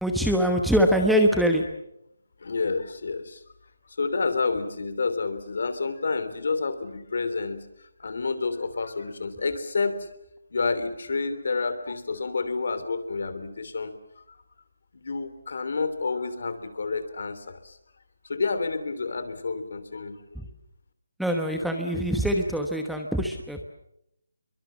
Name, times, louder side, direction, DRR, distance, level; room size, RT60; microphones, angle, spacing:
voice 1, 0.0-1.7 20.3-20.5 21.2-23.6, equal, ahead, 3 dB, 1.1 m, -23 dB
voice 2, 2.4-3.4 3.9-7.6 8.0-10.1 10.5-14.4 14.9-17.8 18.2-20.2, left 4 dB, 55° left, 12 dB, 3.1 m, -29 dB
25.5 x 23.0 x 7.3 m, 0.79 s
hypercardioid pair, 175°, 0 cm